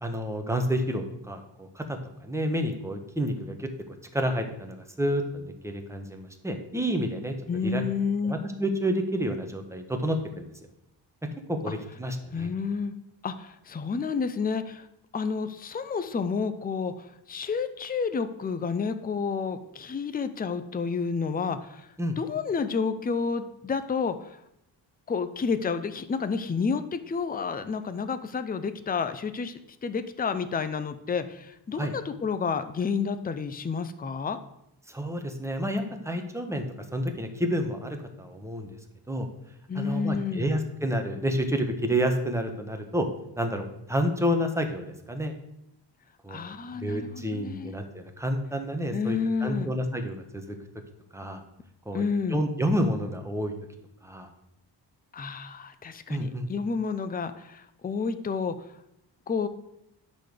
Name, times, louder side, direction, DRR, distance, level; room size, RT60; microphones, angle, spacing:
voice 1, 0.0-7.3 7.6-7.8 8.2-10.5 11.5-12.5 22.0-22.2 31.8-31.9 34.9-36.6 36.9-38.8 39.1-39.3 39.7-43.1 43.4-45.3 46.2-50.5 51.1-51.4 51.9-52.0 52.3-53.5 54.0-54.3 56.1-56.5, equal, 5° right, 4 dB, 1.2 m, -29 dB
voice 2, 7.5-8.4 12.3-12.9 13.2-14.9 15.1-21.9 22.2-24.4 25.1-34.4 39.7-40.5 46.3-47.8 48.9-49.7 51.9-52.4 55.1-58.6 59.3-59.5, left 5 dB, 20° left, 11 dB, 0.6 m, -30 dB
10.0 x 4.2 x 6.6 m, 0.81 s
cardioid pair, 115°, 45 cm